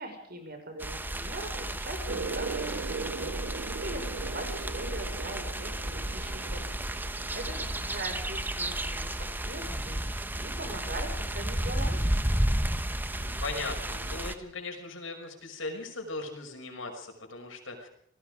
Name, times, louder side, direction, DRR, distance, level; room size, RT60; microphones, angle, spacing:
voice 1, 0.0-3.3 3.8-6.6 7.3-12.0, right 1 dB, 50° right, 6 dB, 5.6 m, -41 dB
sound 1, 0.8-14.3, right 1 dB, 10° right, 1.1 m, -32 dB
sound 2, 2.1-9.2, right 4 dB, 65° right, 0.8 m, -40 dB
voice 2, 7.3-7.9 13.2-17.9, left 3 dB, 80° left, 3 dB, 6.1 m, -39 dB
27.0 x 19.5 x 5.1 m, 0.73 s
head